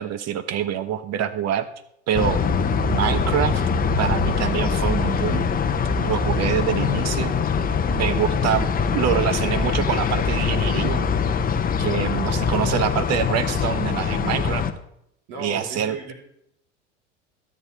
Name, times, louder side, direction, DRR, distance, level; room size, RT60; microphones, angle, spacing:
voice 1, 0.0-1.7 2.1-2.4 2.9-3.6 4.0-5.6 6.0-7.4 7.9-8.7 8.9-11.1 11.8-14.6 15.4-16.1, right 9 dB, 45° right, 11 dB, 1.1 m, -25 dB
sound 1, 2.1-14.7, left 5 dB, 25° left, 0.8 m, -23 dB
voice 2, 8.0-8.4 12.1-12.4 15.3-16.1, right 2 dB, 65° right, 0 dB, 3.5 m, -37 dB
13.0 x 8.6 x 3.4 m, 0.75 s
hypercardioid pair, 85°, 37 cm